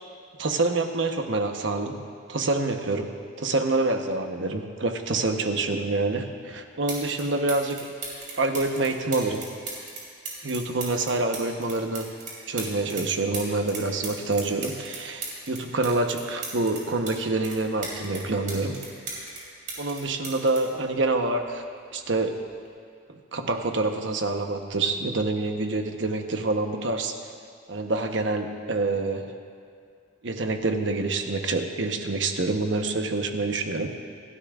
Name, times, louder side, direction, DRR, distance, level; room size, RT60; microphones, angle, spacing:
voice 1, 0.4-2.0 2.3-8.0 8.4-9.5 10.4-12.1 12.5-18.8 19.8-21.6 21.9-22.4 23.1-27.1 27.7-29.3 30.2-33.9, right 2 dB, 70° right, 5 dB, 1.0 m, -27 dB
sound 1, 6.4-6.5 6.9-7.2 7.5-13.1 13.3-17.1 17.4-19.4 19.7-21.5 22.4-22.7, right 4 dB, 40° right, 3.6 m, -37 dB
27.0 x 12.5 x 2.5 m, 2.3 s
head